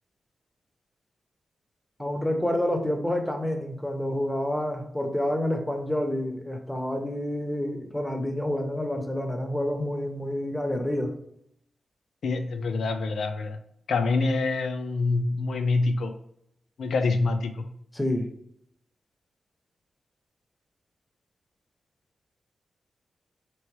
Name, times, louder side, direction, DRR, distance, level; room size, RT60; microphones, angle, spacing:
voice 1, 2.0-11.1 17.9-18.3, left 1 dB, 5° left, 5 dB, 0.6 m, -28 dB
voice 2, 12.2-13.6 13.9-16.1 16.8-17.7, left 3 dB, 80° left, 8 dB, 0.5 m, -26 dB
4.6 x 3.0 x 3.1 m, 0.73 s
wide cardioid pair, 125°, 0 cm